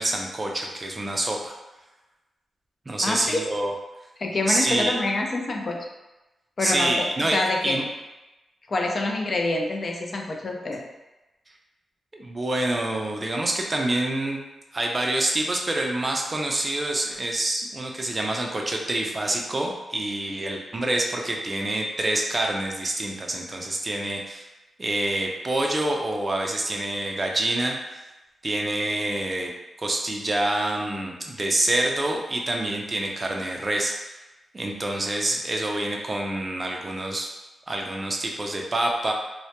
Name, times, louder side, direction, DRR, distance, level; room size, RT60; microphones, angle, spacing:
voice 1, 0.0-1.5 2.9-3.7 4.5-4.9 6.6-7.8 12.1-14.4 14.7-24.5 24.8-28.0 28.4-29.5 29.8-34.0 34.5-37.3 37.7-39.1, right 1 dB, 30° right, 1 dB, 0.4 m, -26 dB
voice 2, 3.0-3.4 4.2-5.8 6.6-7.1 7.3-7.8 8.7-10.8, left 2 dB, 45° left, 2 dB, 0.4 m, -26 dB
2.1 x 2.1 x 2.8 m, 1.0 s
cardioid pair, 90°, 0 cm